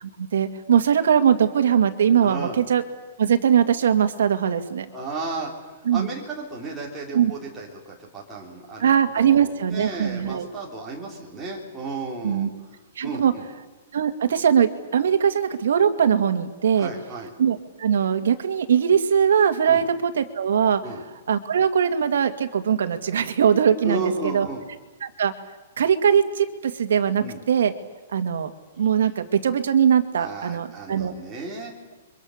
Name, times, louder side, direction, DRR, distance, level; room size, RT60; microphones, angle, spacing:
voice 1, 0.0-2.8 3.2-4.9 5.9-6.1 7.1-7.3 8.8-10.5 12.2-12.5 13.0-13.3 13.9-16.9 17.4-20.8 21.3-24.5 25.0-25.3 25.8-27.7 28.1-28.5 28.8-31.1, right 8 dB, 70° right, 7 dB, 2.1 m, -21 dB
voice 2, 2.2-2.6 4.9-8.9 9.2-12.5 13.0-13.5 16.7-17.3 19.6-19.9 20.8-21.0 23.8-24.7 27.2-27.4 30.2-31.8, right 3 dB, 10° right, -4 dB, 3.7 m, -34 dB
29.5 x 24.0 x 6.6 m, 1.2 s
hypercardioid pair, 175°, 0 cm